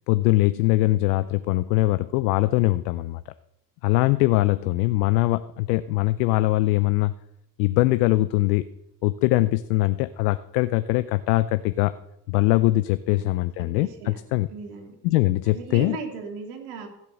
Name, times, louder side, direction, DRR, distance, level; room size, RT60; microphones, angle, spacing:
voice 1, 0.1-3.2 3.8-7.1 7.6-8.6 9.0-11.9 12.3-14.5 15.0-16.0, left 18 dB, 90° left, 13 dB, 0.6 m, -22 dB
voice 2, 13.1-14.2 14.5-15.0 15.4-16.9, right 5 dB, 80° right, 4 dB, 2.9 m, -37 dB
15.5 x 7.4 x 6.4 m, 0.81 s
supercardioid pair, 85°, 47 cm